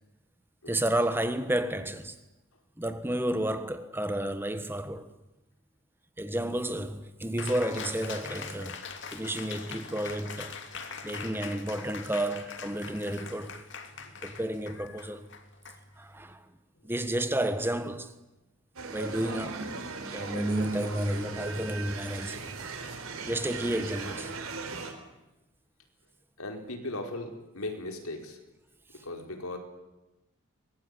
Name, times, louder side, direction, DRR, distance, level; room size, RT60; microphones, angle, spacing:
voice 1, 0.7-2.2 2.8-5.1 6.2-8.8 9.1-10.6 11.0-13.6 14.2-15.3 16.0-16.5 16.8-18.1 18.9-19.8 20.1-22.4 23.2-24.3, right 1 dB, 10° right, 1.4 m, -31 dB
Cheering, 7.4-16.3, left 5 dB, 55° left, 2.9 m, -42 dB
sound 1, 18.8-24.9, right 3 dB, 80° right, 4.2 m, -36 dB
voice 2, 26.4-28.4 28.9-29.6, left 2 dB, 85° left, 4.8 m, -38 dB
24.5 x 21.0 x 9.9 m
head